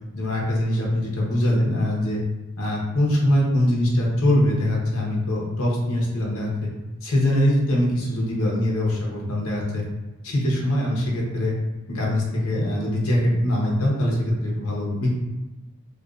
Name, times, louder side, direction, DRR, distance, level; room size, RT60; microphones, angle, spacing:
voice 1, 0.1-2.2 2.6-6.7 7.0-9.8 10.2-11.6 11.9-15.2, left 1 dB, 80° left, -3 dB, 0.8 m, -22 dB
2.5 x 2.3 x 2.3 m, 1.1 s
head